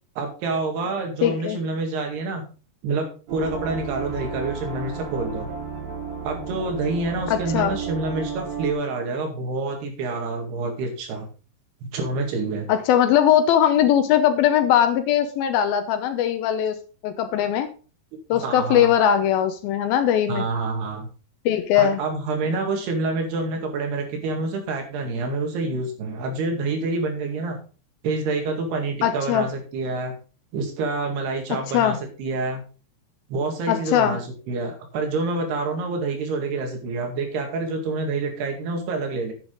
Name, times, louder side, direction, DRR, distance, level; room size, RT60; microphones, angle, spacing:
voice 1, 0.2-2.4 2.8-5.5 6.2-11.3 11.8-12.7 18.3-18.9 20.3-21.1 21.8-27.6 28.0-30.2 30.5-32.6 33.3-39.3, right 3 dB, 75° right, 3 dB, 4.2 m, -27 dB
voice 2, 1.2-1.6 7.3-7.8 12.7-16.8 17.0-17.7 18.3-20.5 21.5-22.0 29.0-29.5 31.5-32.0 33.7-34.2, left 10 dB, 75° left, 9 dB, 2.4 m, -20 dB
sound 1, 3.3-8.7, right 5 dB, 60° right, 4.8 m, -33 dB
10.5 x 9.1 x 3.8 m, 0.36 s
omnidirectional pair, 4.7 m